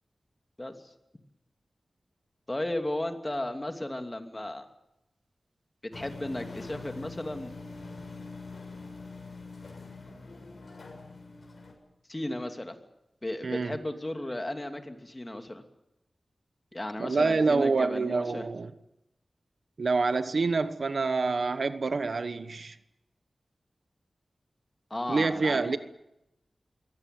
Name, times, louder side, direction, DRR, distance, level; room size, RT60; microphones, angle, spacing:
voice 1, 2.5-4.7 5.9-7.5 12.1-12.8 13.2-15.6 16.7-18.4 24.9-25.8, left 1 dB, 20° left, 6 dB, 2.7 m, -34 dB
sound 1, 5.9-11.7, left 3 dB, 60° left, 6.9 m, -44 dB
voice 2, 13.4-13.8 17.0-18.7 19.8-22.8 25.1-25.8, right 4 dB, 70° right, 12 dB, 1.2 m, -27 dB
22.5 x 17.5 x 9.3 m, 0.87 s
wide cardioid pair, 75°, 0 cm